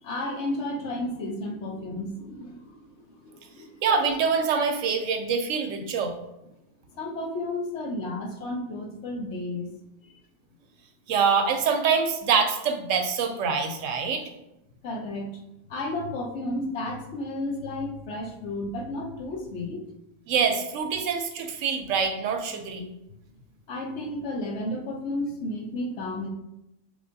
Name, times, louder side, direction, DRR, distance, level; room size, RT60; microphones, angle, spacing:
voice 1, 0.0-2.7 3.2-3.8 7.0-9.7 14.8-15.3 15.7-19.8 23.7-26.3, left 1 dB, 65° left, 2 dB, 1.0 m, -32 dB
voice 2, 3.8-6.1 11.1-14.3 20.3-22.9, right 5 dB, 90° right, 6 dB, 1.0 m, -25 dB
5.0 x 3.2 x 2.6 m, 0.88 s
omnidirectional pair, 1.3 m